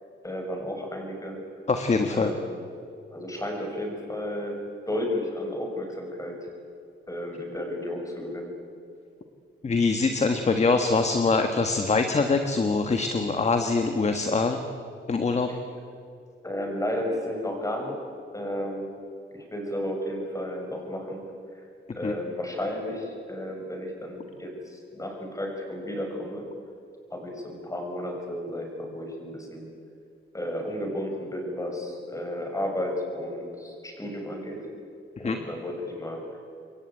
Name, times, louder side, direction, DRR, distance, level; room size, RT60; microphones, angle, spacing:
voice 1, 0.2-1.4 2.1-2.5 3.1-6.5 7.1-8.6 15.5-15.6 16.4-18.0 18.3-18.9 19.3-21.2 21.5-21.6 22.0-26.5 27.1-29.7 30.3-34.7 35.2-36.4, left 1 dB, 15° left, 2 dB, 6.2 m, -33 dB
voice 2, 1.7-2.3 9.6-14.6 15.1-15.5 22.0-22.1 35.2-35.4, left 4 dB, 30° left, 6 dB, 1.5 m, -23 dB
28.0 x 23.0 x 9.0 m, 2.4 s
wide cardioid pair, 145°, 21 cm